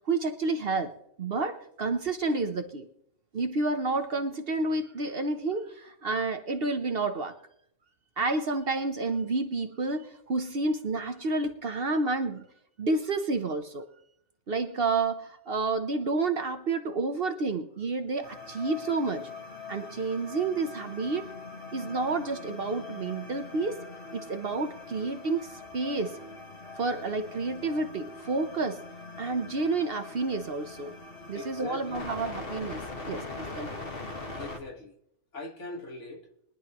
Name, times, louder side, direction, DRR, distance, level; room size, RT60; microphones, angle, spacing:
voice 1, 0.1-0.9 1.2-2.9 3.3-7.4 8.2-12.5 12.8-13.8 14.5-19.3 19.7-21.3 21.7-23.8 24.1-26.2 26.8-28.8 29.2-30.9 31.3-33.8, right 3 dB, 50° right, 7 dB, 1.0 m, -30 dB
sound 1, 18.2-34.6, left 3 dB, 45° left, 1.8 m, -42 dB
voice 2, 31.3-32.1 34.3-35.0 35.3-36.2, left 2 dB, 60° left, 2 dB, 1.9 m, -41 dB
22.5 x 11.0 x 3.0 m, 0.72 s
omnidirectional pair, 1.4 m